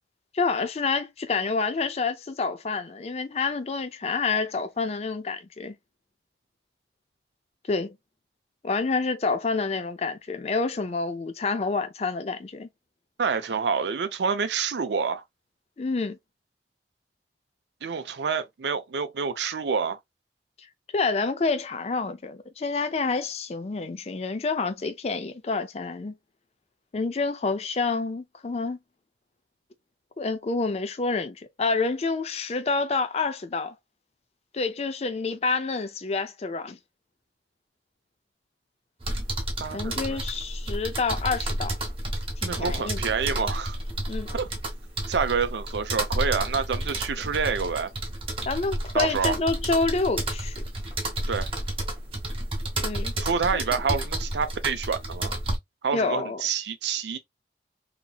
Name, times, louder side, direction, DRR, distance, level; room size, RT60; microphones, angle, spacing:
voice 1, 0.3-5.8 7.7-8.0 8.6-12.7 15.8-16.2 20.9-26.2 26.9-28.8 30.2-33.7 34.5-36.8 39.7-41.8 42.4-43.0 44.1-44.3 48.5-50.6 52.8-53.1 53.5-53.6 55.9-56.4, left 4 dB, 35° left, 0.4 m, -28 dB
voice 2, 13.2-15.2 17.8-20.0 39.6-40.3 42.5-43.8 44.3-44.5 45.1-47.9 48.9-49.4 51.3-51.5 53.2-55.4 55.8-57.2, right 5 dB, 80° right, 0.5 m, -27 dB
sound 1, 39.0-55.6, right 1 dB, 30° right, 0.8 m, -31 dB
2.8 x 2.7 x 2.2 m
head